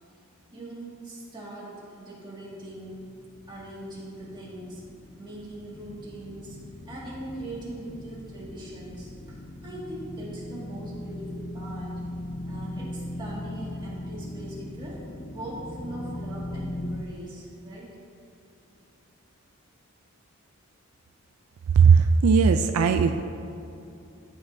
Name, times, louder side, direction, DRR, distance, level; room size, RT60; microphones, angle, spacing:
voice 1, 0.5-4.9 5.2-12.0 12.5-18.0, right 1 dB, 20° right, -6 dB, 1.9 m, -41 dB
sound 1, 2.5-17.0, left 1 dB, 25° left, 0.4 m, -39 dB
voice 2, 21.8-23.2, right 5 dB, 75° right, 8 dB, 0.3 m, -18 dB
15.0 x 5.4 x 2.7 m, 2.6 s
head